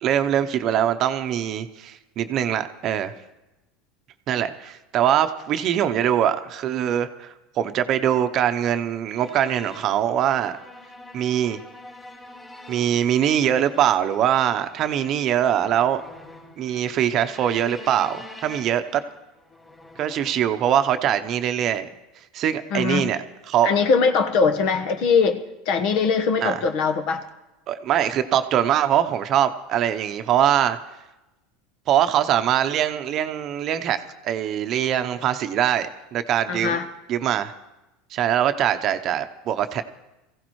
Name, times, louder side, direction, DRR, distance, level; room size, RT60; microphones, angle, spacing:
voice 1, 0.0-3.1 4.3-10.6 11.1-11.6 12.7-16.0 16.6-19.0 20.0-21.9 22.3-23.7 26.4-26.6 27.7-30.8 31.9-36.8 37.1-37.5 38.1-39.8, right 10 dB, 45° right, 9 dB, 0.8 m, -22 dB
sound 1, 9.1-20.3, left 1 dB, 15° left, 3.5 m, -46 dB
voice 2, 22.7-23.1 23.6-27.2 36.5-36.9, left 5 dB, 60° left, 8 dB, 1.2 m, -21 dB
22.5 x 15.5 x 3.2 m, 1.0 s
supercardioid pair, 120°, 0 cm